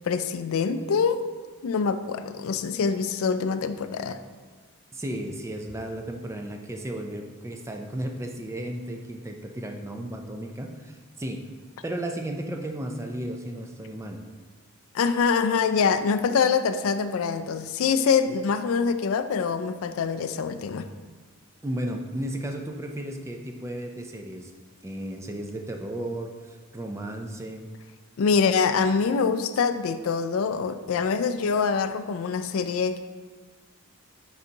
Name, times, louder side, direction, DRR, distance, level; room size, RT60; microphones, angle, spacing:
voice 1, 0.0-1.2 1.6-4.2 14.9-20.9 28.2-33.0, left 5 dB, 65° left, 10 dB, 0.3 m, -25 dB
voice 2, 4.9-11.4 11.8-14.2 21.6-24.5 24.8-27.7, right 1 dB, 15° right, 3 dB, 0.4 m, -34 dB
9.5 x 4.0 x 2.8 m, 1.4 s
head